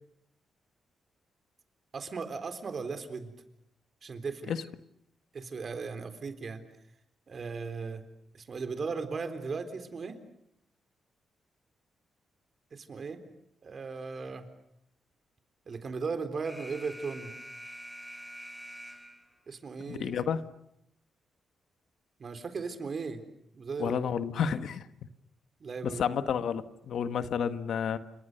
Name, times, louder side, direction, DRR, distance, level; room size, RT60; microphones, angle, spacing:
voice 1, 1.9-3.3 4.0-4.5 5.3-6.6 7.3-8.0 8.3-10.2 12.7-13.2 13.6-14.5 15.7-17.3 19.5-20.1 22.2-23.2 23.5-24.0 25.6-26.0, right 4 dB, 45° right, 9 dB, 3.8 m, -37 dB
Alarm, 16.4-19.4, equal, ahead, 5.2 m, -46 dB
voice 2, 19.9-20.4 23.8-24.9 25.8-28.0, left 7 dB, 75° left, 11 dB, 1.5 m, -30 dB
30.0 x 26.0 x 6.7 m, 0.76 s
cardioid pair, 95°, 0 cm